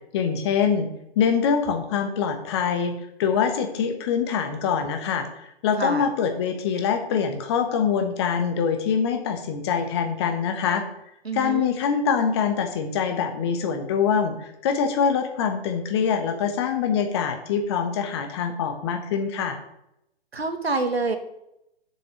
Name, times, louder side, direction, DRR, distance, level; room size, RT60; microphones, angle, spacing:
voice 1, 0.1-0.9 1.2-10.8 11.3-19.6, left 6 dB, 25° left, 6 dB, 1.1 m, -24 dB
voice 2, 11.3-11.7 20.3-21.2, right 3 dB, 70° right, 7 dB, 1.6 m, -26 dB
7.2 x 6.2 x 7.7 m, 0.82 s
figure-of-eight pair, 130°, 32 cm